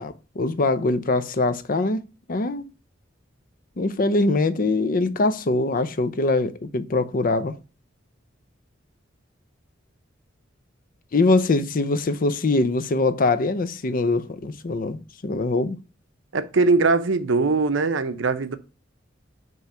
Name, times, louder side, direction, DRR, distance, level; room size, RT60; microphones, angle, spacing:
voice 1, 0.0-2.7 3.8-7.6 11.1-15.8, left 2 dB, 45° left, 0.6 m, -23 dB
voice 2, 16.3-18.6, right 3 dB, 75° right, 0.7 m, -21 dB
5.6 x 3.1 x 5.6 m
head